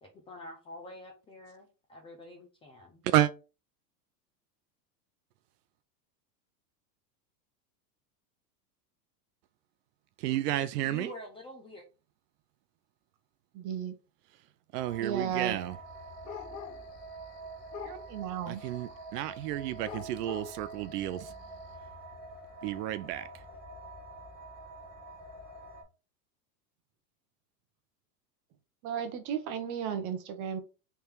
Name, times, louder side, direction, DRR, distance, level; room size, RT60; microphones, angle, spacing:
voice 1, 0.0-3.0 10.8-11.9, left 2 dB, 10° left, 0.4 m, -47 dB
voice 2, 10.2-11.1 14.7-15.8 18.5-21.3 22.6-23.3, right 13 dB, 70° right, 0.6 m, -31 dB
voice 3, 13.5-13.9 15.0-15.6 17.8-18.6 28.8-30.6, right 8 dB, 35° right, 1.0 m, -34 dB
sound 1, 14.8-25.8, right 2 dB, 5° right, 1.5 m, -47 dB
sound 2, 16.3-17.4 17.7-18.2 18.6-21.6, left 8 dB, 70° left, 1.2 m, -45 dB
3.5 x 3.4 x 4.4 m
supercardioid pair, 145°, 49 cm